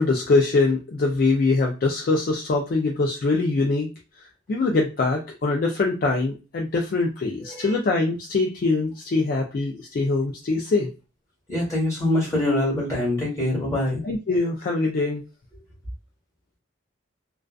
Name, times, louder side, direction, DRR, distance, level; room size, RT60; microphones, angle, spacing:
voice 1, 0.0-3.9 4.2-10.9 14.0-15.2, left 3 dB, 50° left, 1 dB, 0.3 m, -23 dB
voice 2, 7.4-7.8 11.5-14.0, left 1 dB, 15° left, -5 dB, 1.3 m, -24 dB
2.4 x 2.3 x 2.3 m, 0.31 s
head